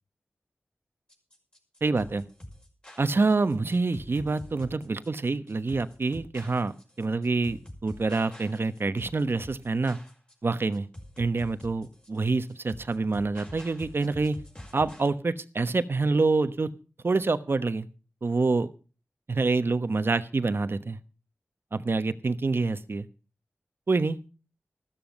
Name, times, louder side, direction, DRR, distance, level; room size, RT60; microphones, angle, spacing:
sound 1, 1.1-15.1, left 1 dB, 25° left, 5.7 m, -46 dB
voice 1, 1.8-2.2 3.0-6.7 7.0-10.0 10.4-10.9 11.2-14.4 14.7-16.7 17.0-17.9 18.2-18.7 19.3-21.0 21.7-23.1 23.9-24.2, right 3 dB, 60° right, 12 dB, 1.1 m, -26 dB
14.0 x 13.5 x 5.3 m, 0.35 s
wide cardioid pair, 70°, 4 cm